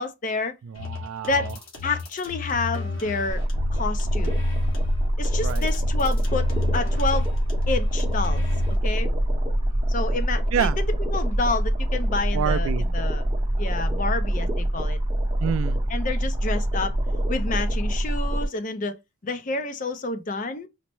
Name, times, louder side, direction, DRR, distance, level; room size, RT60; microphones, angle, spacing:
voice 1, 0.0-0.5 1.3-1.5 1.8-3.4 3.7-4.4 5.2-7.3 7.7-8.4 8.8-9.1 9.9-13.2 13.6-15.0 15.9-17.0 17.3-19.0 19.2-20.7, left 3 dB, 40° left, 0.5 m, -29 dB
voice 2, 0.6-1.5 5.4-5.7 10.5-10.8 12.3-12.9 15.4-15.8, right 8 dB, 75° right, 0.3 m, -27 dB
sound 1, 0.7-8.8, left 4 dB, 70° left, 1.5 m, -33 dB
sound 2, 3.3-18.5, right 1 dB, 25° right, 0.7 m, -24 dB
4.2 x 2.0 x 3.0 m
head